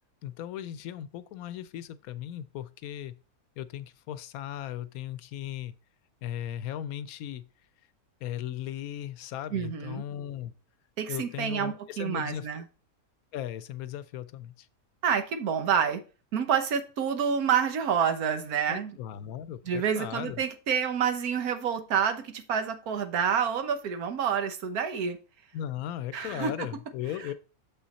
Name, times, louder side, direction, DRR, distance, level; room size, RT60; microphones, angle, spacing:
voice 1, 0.2-3.1 3.6-5.7 6.2-7.4 8.2-10.5 11.1-12.6 13.3-14.7 18.7-20.4 25.5-27.3, left 11 dB, 80° left, 1.0 m, -37 dB
voice 2, 9.5-10.0 11.0-12.6 15.0-16.0 16.3-18.9 19.7-25.2 26.1-26.5, right 7 dB, 85° right, 1.4 m, -28 dB
6.8 x 5.6 x 4.1 m
omnidirectional pair, 1.5 m